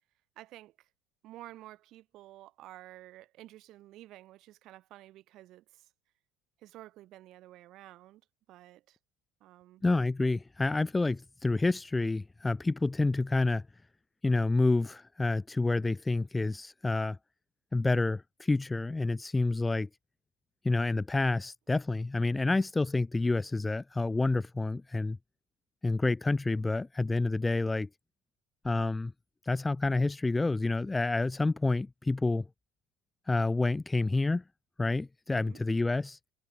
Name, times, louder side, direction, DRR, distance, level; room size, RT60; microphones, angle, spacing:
voice 1, 0.4-0.9 1.2-5.9 6.6-8.2 8.5-9.0 9.4-9.8 35.3-35.6, right 15 dB, 55° right, 2.5 m, -51 dB
voice 2, 9.8-13.6 14.2-17.2 17.7-19.9 20.6-25.2 25.8-27.9 28.6-29.1 29.5-32.5 33.3-34.4 34.8-36.2, left 3 dB, 10° left, 0.5 m, -28 dB
supercardioid pair, 120°, 0 cm